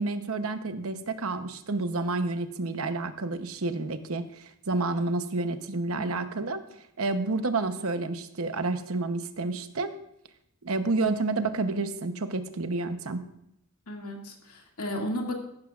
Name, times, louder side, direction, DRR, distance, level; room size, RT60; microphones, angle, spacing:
voice 1, 0.0-6.6 7.0-9.9 10.6-13.2, right 3 dB, 70° right, 9 dB, 0.9 m, -29 dB
voice 2, 13.9-15.3, equal, 85° left, 1 dB, 2.2 m, -34 dB
15.0 x 12.0 x 2.5 m, 0.77 s
head